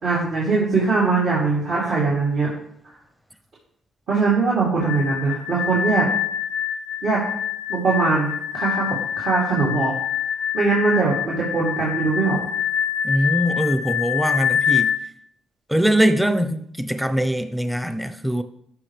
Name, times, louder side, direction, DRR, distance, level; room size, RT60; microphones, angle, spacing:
voice 1, 0.0-2.5 4.1-6.1 7.0-7.2 7.7-9.9 10.5-12.4, right 4 dB, 65° right, 2.9 m, -21 dB
sound 1, 4.8-15.0, left 9 dB, 85° left, 0.3 m, -25 dB
voice 2, 13.0-14.9 15.7-18.4, equal, 5° right, 0.7 m, -22 dB
13.5 x 6.0 x 3.4 m
cardioid pair, 90°, 0 cm